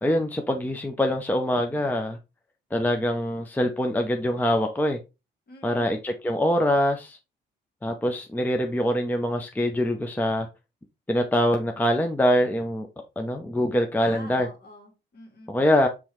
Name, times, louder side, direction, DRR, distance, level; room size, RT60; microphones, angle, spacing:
voice 1, 0.0-2.2 2.7-5.0 5.6-7.2 7.8-10.5 11.1-12.9 13.2-14.5 15.5-15.9, left 1 dB, 10° left, 4 dB, 0.6 m, -24 dB
voice 2, 5.5-6.0 14.0-15.5, left 1 dB, 50° left, 1 dB, 2.1 m, -46 dB
5.4 x 3.1 x 3.1 m, 0.27 s
cardioid pair, 90°, 20 cm